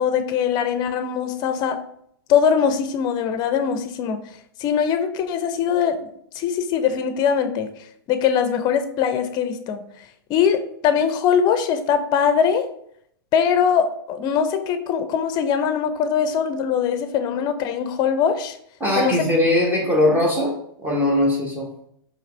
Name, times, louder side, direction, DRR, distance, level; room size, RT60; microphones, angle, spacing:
voice 1, 0.0-1.8 2.3-4.2 4.6-7.7 8.1-9.8 10.3-12.7 13.3-18.6 19.0-19.2, left 7 dB, 35° left, 9 dB, 0.5 m, -21 dB
voice 2, 18.8-20.5 20.8-21.7, left 1 dB, 15° right, -2 dB, 1.1 m, -20 dB
4.8 x 3.0 x 3.2 m, 0.70 s
hypercardioid pair, 105°, 12 cm